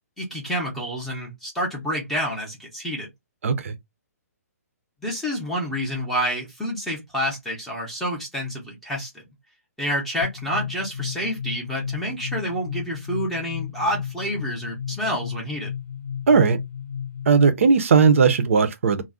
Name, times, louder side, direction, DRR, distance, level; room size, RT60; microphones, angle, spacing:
voice 1, 0.2-3.1 5.0-9.2 9.8-15.7, equal, ahead, 0.5 m, -28 dB
voice 2, 3.4-3.7 16.3-16.6 17.3-19.0, right 5 dB, 55° right, 0.5 m, -17 dB
sound 1, 10.2-17.8, left 8 dB, 45° left, 0.6 m, -34 dB
2.3 x 2.0 x 3.5 m
hypercardioid pair, 175°, 9 cm